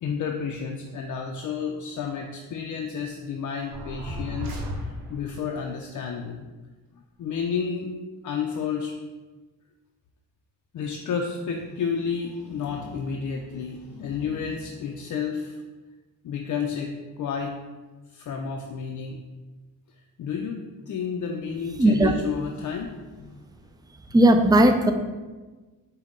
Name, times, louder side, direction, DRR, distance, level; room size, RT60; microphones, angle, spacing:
voice 1, 0.0-6.5 7.2-7.9 8.2-8.9 10.7-15.6 16.2-17.6 18.1-19.2 20.2-23.4, left 6 dB, 55° left, 2 dB, 0.5 m, -31 dB
sound 1, 3.7-5.4, equal, 70° right, 0.8 m, -34 dB
voice 2, 21.8-22.1 24.1-24.9, right 1 dB, 10° right, 7 dB, 0.3 m, -17 dB
5.3 x 2.2 x 3.6 m, 1.3 s
supercardioid pair, 65°, 37 cm